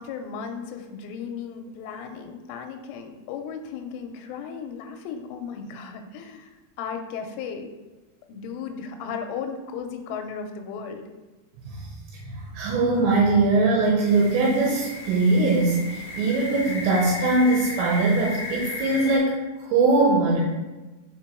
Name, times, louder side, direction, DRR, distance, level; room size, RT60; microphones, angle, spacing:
voice 1, 0.0-6.5 6.8-7.7 8.3-11.0, left 6 dB, 90° left, 5 dB, 3.1 m, -35 dB
voice 2, 12.2-19.3 19.6-20.4, right 3 dB, 80° right, -3 dB, 3.1 m, -21 dB
sound 1, 14.1-19.2, left 2 dB, 75° left, 1.1 m, -35 dB
6.7 x 4.7 x 4.5 m, 1.2 s
omnidirectional pair, 5.5 m